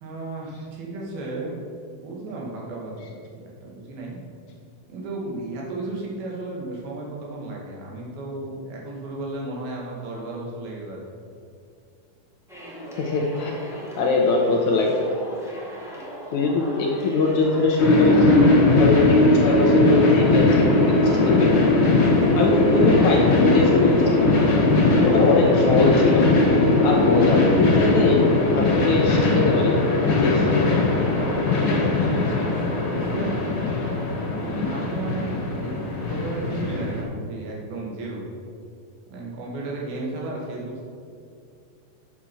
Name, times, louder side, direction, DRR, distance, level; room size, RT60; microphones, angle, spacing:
voice 1, 0.0-4.2 4.9-11.1 31.6-33.6 34.3-35.8 36.1-38.3 39.1-40.9, right 2 dB, 80° right, -3 dB, 3.9 m, -33 dB
sound 1, 12.5-25.8, equal, ahead, 0.6 m, -39 dB
voice 2, 13.0-15.2 16.3-18.3 18.8-21.7 22.3-24.3 25.0-26.3 26.8-28.3 28.5-30.5, left 3 dB, 70° left, 0 dB, 1.9 m, -22 dB
sound 2, 17.8-37.0, left 2 dB, 40° left, 2.3 m, -19 dB
8.8 x 6.8 x 6.2 m, 2.3 s
omnidirectional pair, 4.3 m